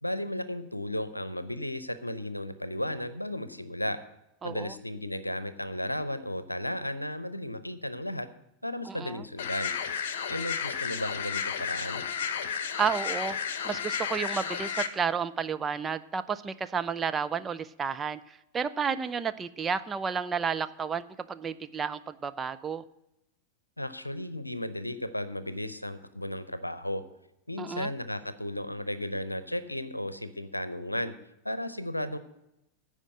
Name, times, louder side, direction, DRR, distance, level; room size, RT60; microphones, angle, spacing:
voice 1, 0.0-4.0 4.4-8.3 8.6-9.7 10.3-12.0 23.8-27.0 27.5-31.1 31.4-32.2, left 1 dB, 85° left, 13 dB, 0.7 m, -34 dB
voice 2, 4.4-4.7 8.9-9.2 12.8-13.4 13.6-18.2 18.5-22.8 27.6-27.9, right 6 dB, 20° right, 12 dB, 0.5 m, -31 dB
sound 1, 9.4-14.9, left 7 dB, 55° left, 1.0 m, -32 dB
15.0 x 5.0 x 7.9 m, 0.86 s
figure-of-eight pair, 90°, 0 cm